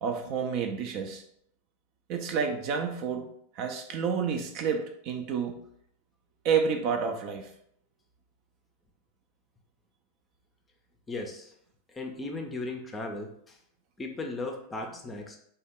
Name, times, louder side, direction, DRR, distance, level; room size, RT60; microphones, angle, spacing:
voice 1, 0.0-1.2 2.1-3.3 3.6-5.6 6.4-7.5 14.8-14.9, right 6 dB, 45° right, 5 dB, 0.4 m, -29 dB
voice 2, 11.1-11.5 12.0-13.3 14.0-15.4, left 2 dB, 15° left, 2 dB, 0.5 m, -36 dB
3.4 x 2.2 x 3.6 m, 0.68 s
figure-of-eight pair, 90°, 0 cm